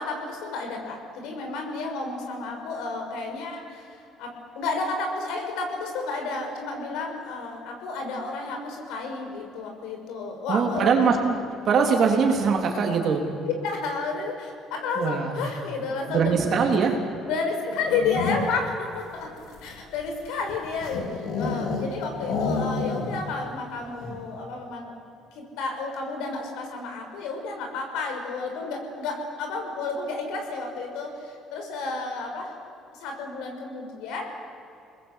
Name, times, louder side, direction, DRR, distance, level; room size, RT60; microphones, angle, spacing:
voice 1, 0.0-11.2 13.4-16.5 17.3-19.3 19.6-24.9 25.3-32.5 33.0-34.3, left 4 dB, 80° left, 3 dB, 6.0 m, -31 dB
voice 2, 10.5-11.4 11.7-13.2 15.0-15.4 16.1-17.0, right 5 dB, 40° right, 2 dB, 3.5 m, -22 dB
sound 1, 17.7-18.7 19.4-21.9 22.2-23.3 23.6-23.7 24.0-24.3, left 4 dB, 65° left, 3.5 m, -30 dB
30.0 x 20.5 x 8.4 m, 2.7 s
cardioid pair, 175°, 0 cm